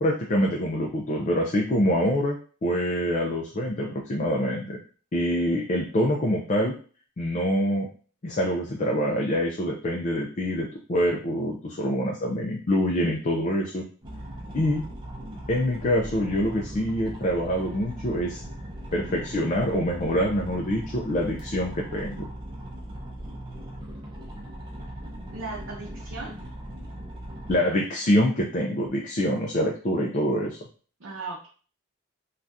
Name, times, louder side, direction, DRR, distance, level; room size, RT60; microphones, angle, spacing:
voice 1, 0.0-4.8 5.1-6.7 7.2-7.9 8.2-13.8 14.5-14.8 15.5-18.4 18.9-22.3 27.5-30.6, equal, 35° left, -1 dB, 0.4 m, -25 dB
sound 1, 14.0-27.5, right 1 dB, 20° right, 0.7 m, -39 dB
voice 2, 25.3-26.4 31.0-31.5, right 3 dB, 60° right, -3 dB, 0.6 m, -37 dB
2.7 x 2.4 x 3.4 m, 0.40 s
head